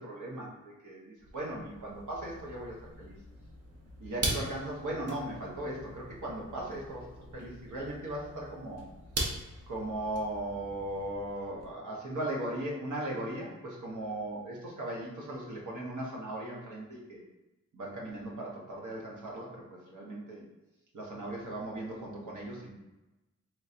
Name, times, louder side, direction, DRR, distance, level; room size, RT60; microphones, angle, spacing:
voice 1, 0.0-3.1 4.0-8.8 9.7-17.2 17.7-20.4 20.9-22.7, right 1 dB, 75° right, -4 dB, 1.2 m, -38 dB
sound 1, 1.2-11.7, right 1 dB, 55° right, 0.9 m, -41 dB
3.8 x 3.1 x 2.8 m, 1.0 s
wide cardioid pair, 95°, 30 cm